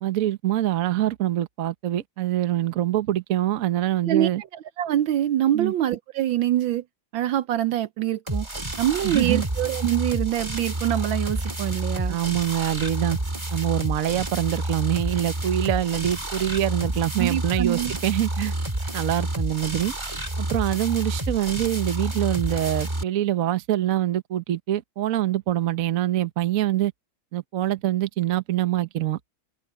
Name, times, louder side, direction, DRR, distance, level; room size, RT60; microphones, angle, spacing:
voice 1, 0.0-4.4 5.5-5.7 9.0-9.4 12.1-13.2 13.5-18.5 18.9-19.9 20.4-26.9 27.3-29.2, right 12 dB, 50° right, 1.1 m, -25 dB
voice 2, 4.8-6.8 7.1-8.5 8.8-12.2 17.2-17.9, right 12 dB, 75° right, 1.4 m, -24 dB
sound 1, 8.3-23.0, right 1 dB, 15° right, 1.9 m, -29 dB
omnidirectional pair, 2.3 m